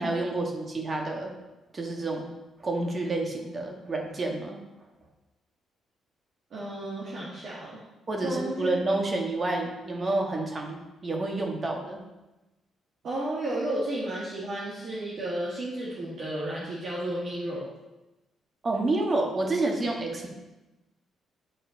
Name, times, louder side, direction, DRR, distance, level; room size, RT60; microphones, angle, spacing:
voice 1, 0.0-1.3 1.7-2.3 2.6-4.6 8.1-12.0 18.6-20.3, right 2 dB, 35° right, 1 dB, 1.6 m, -29 dB
voice 2, 6.5-7.8 8.2-8.7 13.0-17.7, right 1 dB, 60° right, -7 dB, 1.9 m, -32 dB
10.5 x 4.3 x 4.1 m, 1.0 s
cardioid pair, 90°, 0 cm